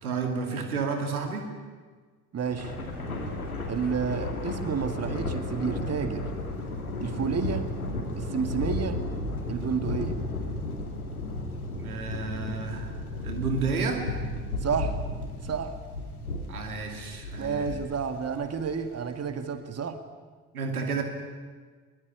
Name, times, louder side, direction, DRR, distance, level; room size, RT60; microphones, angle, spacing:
voice 1, 0.0-1.5 11.8-14.1 16.5-17.7 20.5-21.0, right 4 dB, 80° right, 4 dB, 2.6 m, -31 dB
voice 2, 2.3-2.8 3.7-6.2 7.0-7.7 8.2-9.0 9.5-10.2 14.6-15.0 15.4-15.8 17.4-20.0, right 6 dB, 35° right, 8 dB, 2.1 m, -30 dB
Thunder, 2.4-19.0, left 2 dB, 85° left, 2.4 m, -34 dB
22.5 x 22.0 x 10.0 m, 1.5 s
figure-of-eight pair, 50°, 43 cm